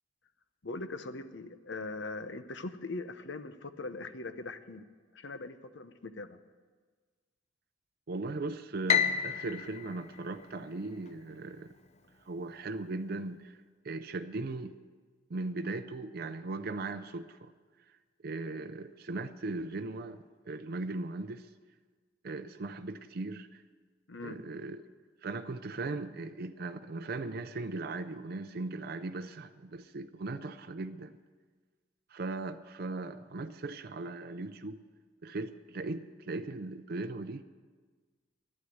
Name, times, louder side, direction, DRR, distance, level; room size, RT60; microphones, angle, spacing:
voice 1, 0.6-4.9 5.1-6.4 24.1-24.4, left 3 dB, 70° left, 0.8 m, -41 dB
voice 2, 8.1-11.7 12.3-13.6 13.8-14.8 15.3-17.5 18.2-21.5 22.2-23.6 24.2-24.8 25.2-31.2 32.1-34.8 35.2-37.4, right 3 dB, 55° right, 0.5 m, -38 dB
Piano, 8.9-11.1, left 7 dB, 35° left, 0.6 m, -31 dB
12.0 x 9.6 x 9.3 m
head